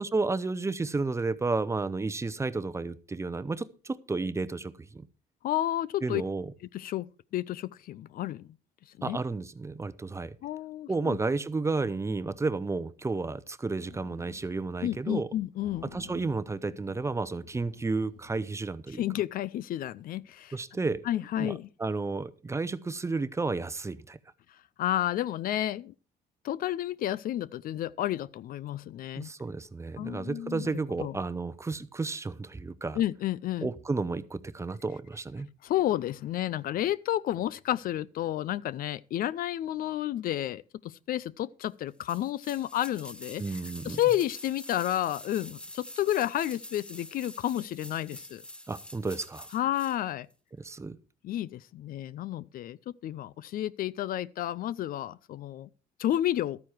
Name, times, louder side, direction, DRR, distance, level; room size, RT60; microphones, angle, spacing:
voice 1, 0.0-5.1 6.0-6.5 9.0-10.4 10.9-15.3 15.8-19.0 20.5-21.1 21.4-24.2 29.2-33.0 33.6-35.5 43.4-44.0 48.7-49.5 50.6-51.0, right 3 dB, 15° right, 0.7 m, -32 dB
voice 2, 5.4-6.2 6.7-8.4 9.0-9.2 10.4-11.2 14.8-15.9 18.9-20.5 21.0-21.7 24.8-25.9 26.4-29.3 30.0-31.2 33.0-33.7 35.6-48.4 49.5-50.3 51.2-55.7 56.0-56.6, left 13 dB, 60° left, 0.5 m, -31 dB
sound 1, 13.9-14.9 15.1-15.3 15.6-18.9, left 7 dB, 90° left, 1.8 m, -53 dB
sound 2, 42.1-50.0 50.3-50.4, left 1 dB, 5° left, 0.9 m, -46 dB
13.0 x 9.5 x 4.5 m
cardioid pair, 110°, 17 cm